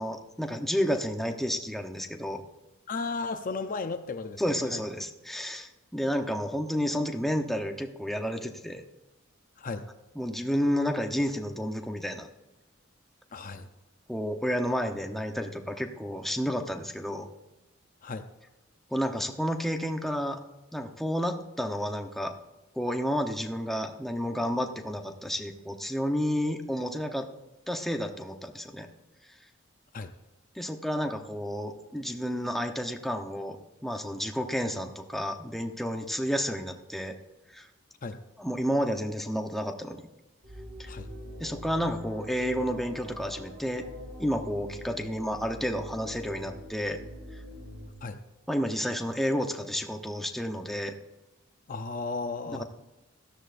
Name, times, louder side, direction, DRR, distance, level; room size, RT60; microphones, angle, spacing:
voice 1, 0.0-2.4 4.4-8.8 10.1-12.3 14.1-17.3 18.9-20.4 20.7-22.3 22.8-27.3 27.7-28.9 30.5-33.6 33.8-37.1 37.5-37.7 38.4-40.0 40.8-40.9 41.4-43.8 44.2-47.0 48.5-50.9 52.5-52.6, equal, ahead, 3 dB, 0.9 m, -31 dB
voice 2, 2.9-4.4 4.7-4.8 9.6-9.8 13.3-13.7 18.0-18.3 29.9-30.1 38.0-38.2 40.9-41.1 48.0-48.2 51.7-52.6, left 4 dB, 45° left, 8 dB, 0.6 m, -34 dB
sound 1, 40.4-47.9, left 1 dB, 55° right, 4.8 m, -43 dB
17.0 x 13.5 x 2.6 m, 1.0 s
head